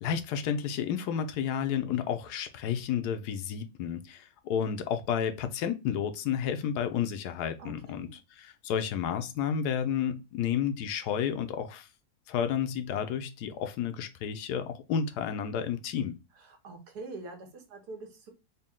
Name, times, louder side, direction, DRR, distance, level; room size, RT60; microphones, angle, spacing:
voice 1, 0.0-8.1 8.4-11.9 12.3-16.2, left 8 dB, 85° left, 1.1 m, -31 dB
voice 2, 7.6-8.1 16.4-18.3, right 3 dB, 85° right, 1.6 m, -44 dB
4.1 x 2.2 x 3.5 m
omnidirectional pair, 1.7 m